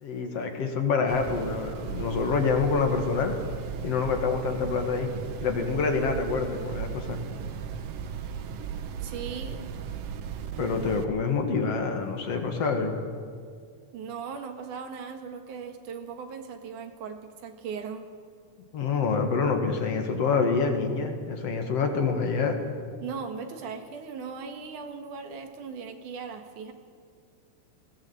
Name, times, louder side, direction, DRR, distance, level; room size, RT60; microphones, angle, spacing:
voice 1, 0.0-3.4 3.8-5.1 5.4-7.2 10.6-13.0 18.7-22.6, left 5 dB, 55° left, 5 dB, 2.7 m, -26 dB
sound 1, 1.0-11.0, right 7 dB, 65° right, 1.7 m, -36 dB
voice 2, 9.0-9.7 13.9-18.1 23.0-26.7, right 6 dB, 85° right, 6 dB, 3.1 m, -38 dB
20.0 x 17.5 x 8.2 m, 2.1 s
omnidirectional pair, 3.5 m